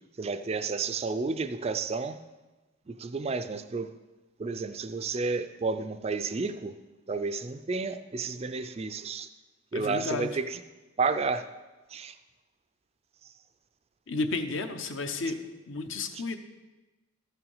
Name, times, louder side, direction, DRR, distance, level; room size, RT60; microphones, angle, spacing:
voice 1, 0.2-2.2 2.9-3.9 4.4-6.8 7.1-9.3 9.7-10.6 11.0-11.5 11.9-12.2 13.2-13.3 16.1-16.2, right 4 dB, 30° right, 10 dB, 0.3 m, -31 dB
voice 2, 9.7-10.3 14.1-15.4 15.7-16.4, left 3 dB, 60° left, 8 dB, 0.8 m, -32 dB
13.5 x 5.8 x 5.5 m, 1.2 s
head